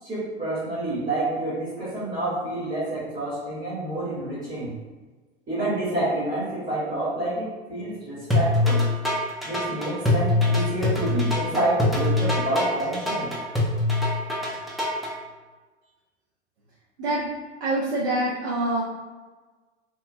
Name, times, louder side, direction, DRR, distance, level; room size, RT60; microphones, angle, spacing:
voice 1, 0.0-4.7 5.5-8.9 9.4-13.3, right 1 dB, 25° right, -9 dB, 1.1 m, -28 dB
sound 1, 8.3-15.1, left 2 dB, ahead, 0.3 m, -23 dB
voice 2, 17.6-18.8, right 1 dB, 70° right, -5 dB, 0.7 m, -25 dB
2.9 x 2.2 x 2.5 m, 1.3 s
hypercardioid pair, 90°, 35 cm